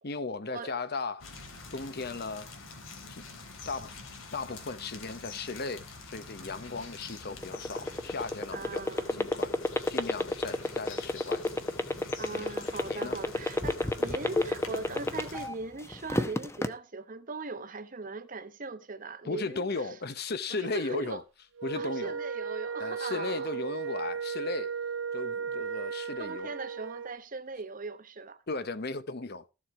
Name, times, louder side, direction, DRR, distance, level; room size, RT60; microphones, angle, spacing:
voice 1, 0.0-1.3 1.7-2.5 3.1-3.2 3.7-4.0 4.3-9.6 9.9-11.5 12.3-12.5 12.9-13.2 19.2-21.2 21.6-22.2 22.8-24.7 25.1-26.5 28.5-29.5, left 3 dB, 50° left, 0.9 m, -36 dB
sound 1, 1.2-15.5, left 3 dB, 80° left, 3.2 m, -46 dB
sound 2, 7.3-15.5 15.9-16.7, left 2 dB, 15° left, 0.8 m, -28 dB
voice 2, 8.5-9.2 12.2-19.6 20.5-21.2 21.7-23.6 26.2-28.4, right 4 dB, 40° right, 1.0 m, -40 dB
Wind instrument woodwind instrument, 21.6-27.2, right 6 dB, 70° right, 0.5 m, -35 dB
14.0 x 7.3 x 4.8 m
head